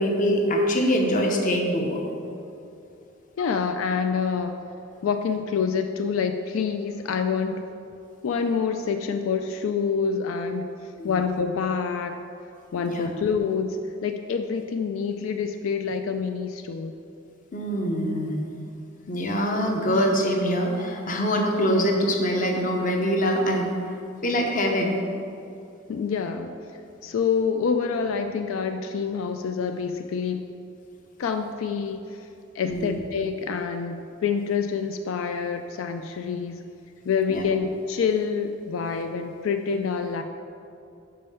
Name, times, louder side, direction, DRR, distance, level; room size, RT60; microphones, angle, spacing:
voice 1, 0.0-2.0 11.0-11.2 12.8-13.1 17.5-18.4 19.1-23.7 24.2-25.0 32.6-33.0 37.3-37.4, equal, 40° left, 2 dB, 0.8 m, -24 dB
voice 2, 3.4-4.6 5.0-7.6 8.2-10.7 11.0-12.2 12.7-13.8 14.0-16.9 25.9-30.5 31.2-32.3 32.5-36.6 37.1-40.2, left 6 dB, 85° left, 7 dB, 0.3 m, -27 dB
5.5 x 5.3 x 5.4 m, 2.6 s
head